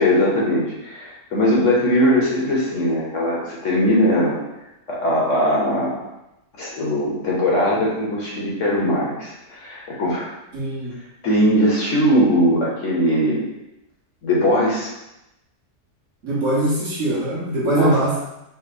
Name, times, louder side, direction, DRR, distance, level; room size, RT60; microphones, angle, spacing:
voice 1, 0.0-4.4 4.9-6.1 6.6-10.3 11.2-13.4 14.2-14.9 17.8-18.0, equal, 55° left, -4 dB, 1.1 m, -20 dB
voice 2, 10.5-10.9 16.2-18.2, right 1 dB, 50° right, -7 dB, 1.4 m, -21 dB
5.4 x 2.0 x 4.1 m, 0.90 s
omnidirectional pair, 1.7 m